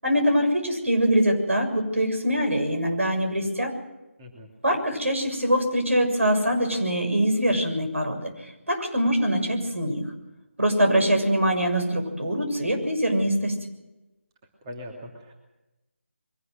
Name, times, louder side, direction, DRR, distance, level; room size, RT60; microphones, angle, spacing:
voice 1, 0.0-3.7 4.6-8.3 8.7-10.0 10.6-13.6, equal, 80° right, 4 dB, 6.6 m, -23 dB
voice 2, 14.6-15.3, left 1 dB, 20° right, 0 dB, 2.8 m, -40 dB
23.0 x 18.5 x 6.5 m, 0.99 s
figure-of-eight pair, 160°, 7 cm